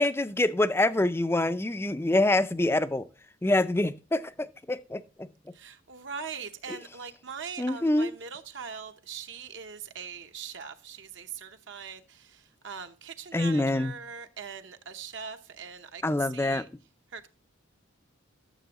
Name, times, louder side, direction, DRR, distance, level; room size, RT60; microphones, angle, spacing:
voice 1, 0.0-3.1 3.4-5.3 7.6-8.1 13.3-13.9 16.0-16.6, left 2 dB, 10° left, 0.4 m, -26 dB
voice 2, 5.5-16.7 17.1-17.3, right 6 dB, 60° right, 0.8 m, -41 dB
13.0 x 7.0 x 2.9 m
head